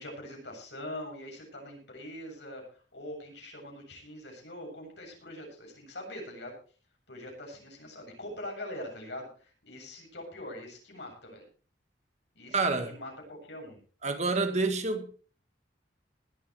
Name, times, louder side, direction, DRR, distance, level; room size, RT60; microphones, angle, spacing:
voice 1, 0.0-2.6 2.9-6.5 7.1-11.4 12.3-13.8, left 1 dB, 70° left, 7.8 m, -43 dB
voice 2, 12.5-12.9 14.0-15.2, right 3 dB, 40° right, 1.6 m, -28 dB
20.0 x 12.5 x 3.2 m
head